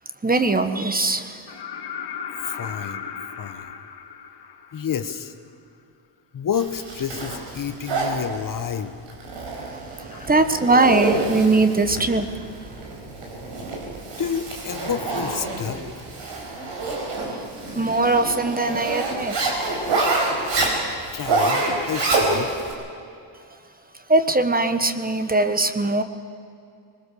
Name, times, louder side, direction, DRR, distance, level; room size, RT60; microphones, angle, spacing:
voice 1, 0.2-1.4 9.7-9.8 10.3-12.3 17.8-19.6 24.1-26.0, right 2 dB, 20° right, 9 dB, 1.3 m, -20 dB
sound 1, 1.5-5.3 7.2-7.3, left 7 dB, 60° left, 1.8 m, -36 dB
voice 2, 2.4-3.1 3.4-3.7 4.7-5.3 6.3-8.9 10.1-10.3 14.2-15.8 21.1-22.5, left 8 dB, 45° left, 9 dB, 1.2 m, -29 dB
Zipper (clothing), 6.5-22.7, right 3 dB, 75° right, 5.1 m, -27 dB
22.0 x 20.5 x 6.9 m, 2.4 s
cardioid pair, 85°, 44 cm